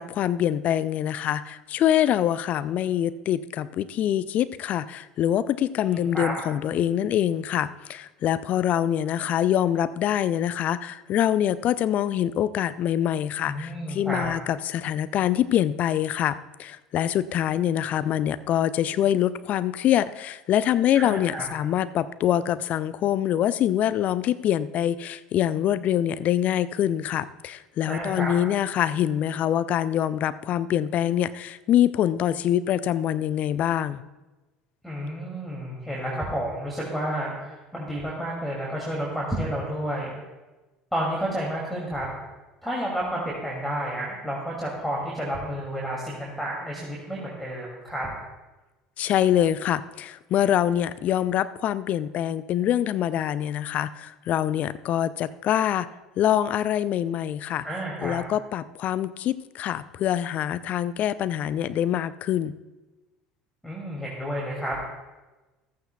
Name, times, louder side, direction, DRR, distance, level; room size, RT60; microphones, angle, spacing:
voice 1, 0.0-34.0 49.0-55.9 56.2-57.7 58.0-62.5, left 11 dB, 45° left, 15 dB, 0.5 m, -25 dB
voice 2, 5.8-6.3 13.5-14.3 20.9-21.5 27.9-28.3 34.8-40.1 40.9-42.1 42.6-48.1 57.6-58.2 63.6-64.8, right 1 dB, 5° left, -4 dB, 2.6 m, -30 dB
14.5 x 14.0 x 2.3 m, 1.1 s
figure-of-eight pair, 65°, 3 cm